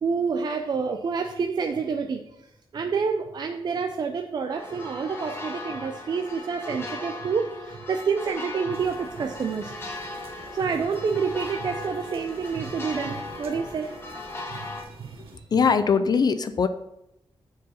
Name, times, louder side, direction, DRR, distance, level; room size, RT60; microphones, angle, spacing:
voice 1, 0.0-2.2 2.7-9.7 10.5-14.0 14.4-15.3, right 5 dB, 45° right, 5 dB, 0.5 m, -28 dB
sound 1, 4.5-14.8, left 2 dB, 25° left, 1.3 m, -38 dB
sound 2, 8.7-15.4, right 4 dB, 85° right, 1.1 m, -49 dB
voice 2, 15.5-16.7, left 6 dB, 45° left, 11 dB, 0.4 m, -21 dB
7.3 x 4.7 x 5.7 m, 0.85 s
wide cardioid pair, 170°, 10 cm